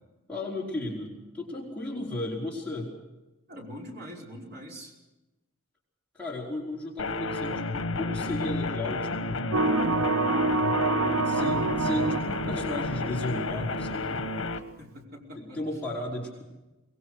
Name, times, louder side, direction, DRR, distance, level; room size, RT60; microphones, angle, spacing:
voice 1, 0.3-2.9 6.1-9.6 11.2-14.3 15.3-16.4, left 2 dB, 5° left, -5 dB, 4.9 m, -35 dB
voice 2, 3.5-4.9 14.8-15.6, equal, 45° right, -2 dB, 5.1 m, -43 dB
sound 1, 7.0-14.6, left 2 dB, 75° left, 1.3 m, -31 dB
sound 2, 9.5-13.4, right 3 dB, 80° right, 0.7 m, -26 dB
23.5 x 21.5 x 6.4 m, 1.0 s
head